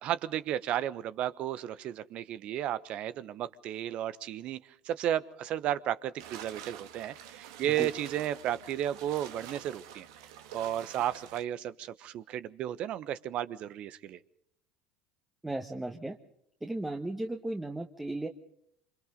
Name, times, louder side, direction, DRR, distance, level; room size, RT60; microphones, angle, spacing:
voice 1, 0.0-4.6 4.8-10.1 10.5-14.2, right 11 dB, 50° right, 15 dB, 1.2 m, -33 dB
sound 1, 6.2-11.4, right 9 dB, 70° right, 1.9 m, -47 dB
voice 2, 15.4-16.2 16.6-18.3, right 2 dB, 10° right, 4 dB, 1.7 m, -35 dB
27.5 x 26.0 x 4.0 m, 0.71 s
hypercardioid pair, 70°, 2 cm